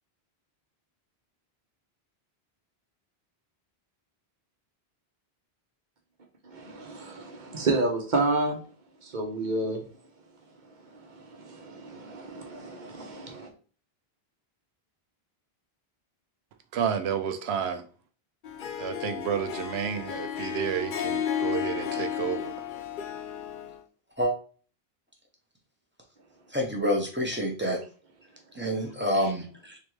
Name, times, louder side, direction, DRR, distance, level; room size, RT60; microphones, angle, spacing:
voice 1, 6.4-8.6 9.0-9.9 11.1-13.5, right 2 dB, 50° right, 1.0 m, -30 dB
voice 2, 16.7-17.8 18.8-22.5, right 8 dB, 80° right, 0.9 m, -30 dB
Harp, 18.4-23.8, left 9 dB, 60° left, 0.7 m, -33 dB
voice 3, 26.5-27.8 28.5-29.8, equal, 10° right, 0.8 m, -27 dB
3.8 x 3.5 x 3.1 m
omnidirectional pair, 1.1 m